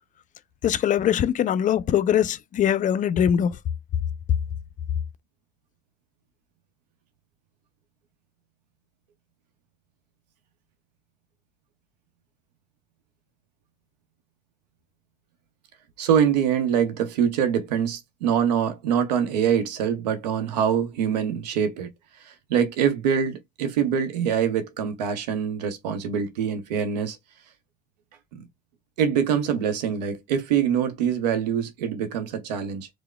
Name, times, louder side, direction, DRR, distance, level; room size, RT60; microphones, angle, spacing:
voice 1, 0.6-3.6, left 9 dB, 40° left, 0.4 m, -22 dB
voice 2, 16.0-21.9 22.2-27.2 29.0-32.9, right 8 dB, 75° right, 0.8 m, -24 dB
4.6 x 2.1 x 2.2 m
figure-of-eight pair, 55°, 21 cm